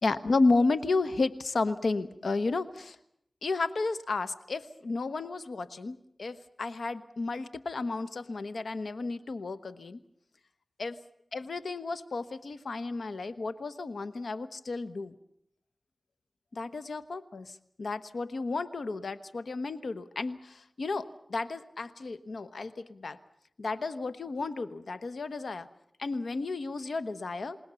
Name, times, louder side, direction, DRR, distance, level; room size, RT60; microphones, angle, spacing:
voice 1, 0.0-3.0 3.4-10.0 10.8-11.0 11.3-15.2 16.5-23.2 23.6-25.7 26.0-27.6, left 3 dB, 80° left, 12 dB, 1.1 m, -32 dB
29.0 x 18.0 x 7.0 m, 0.72 s
wide cardioid pair, 60°, 0 cm